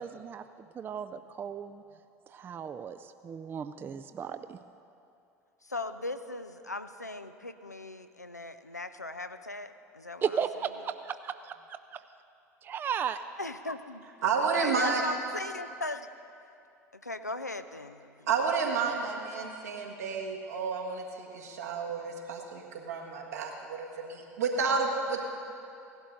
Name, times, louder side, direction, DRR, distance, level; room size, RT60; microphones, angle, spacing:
voice 1, 0.0-1.8 2.3-4.6 10.2-11.5 12.6-13.2, right 7 dB, 25° right, 10 dB, 0.3 m, -35 dB
voice 2, 5.6-10.3 13.4-14.0 14.5-16.1 17.0-18.3 18.7-19.1, left 2 dB, 90° left, 10 dB, 0.4 m, -38 dB
voice 3, 14.2-15.1 18.3-25.2, right 5 dB, 70° right, -1 dB, 1.6 m, -31 dB
17.0 x 11.5 x 3.9 m, 2.6 s
figure-of-eight pair, 70°, 9 cm